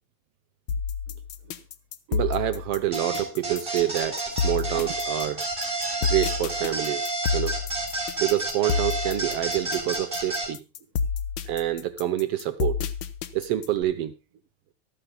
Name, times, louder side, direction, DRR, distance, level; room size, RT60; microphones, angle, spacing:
sound 1, 0.7-13.8, left 6 dB, 85° left, 1.0 m, -30 dB
voice 1, 2.1-5.5 6.1-7.6 8.2-10.6 11.5-12.8 13.3-14.1, right 13 dB, 70° right, 1.5 m, -27 dB
sound 2, 2.9-10.5, right 2 dB, 15° right, 4.1 m, -30 dB
24.5 x 8.9 x 2.2 m
omnidirectional pair, 3.3 m